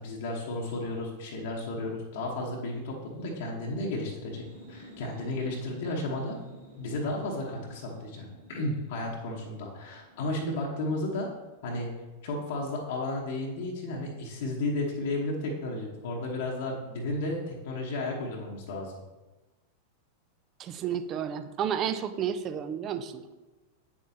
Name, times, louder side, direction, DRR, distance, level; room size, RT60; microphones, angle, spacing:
voice 1, 0.0-6.4 6.8-11.3 11.6-11.9 12.2-18.9, left 2 dB, 55° left, -2 dB, 1.1 m, -33 dB
sound 1, 4.1-11.6, equal, 75° right, 2.3 m, -52 dB
voice 2, 20.6-23.3, right 8 dB, 30° right, 10 dB, 0.5 m, -31 dB
8.4 x 7.2 x 2.8 m, 1.2 s
figure-of-eight pair, 90°, 0 cm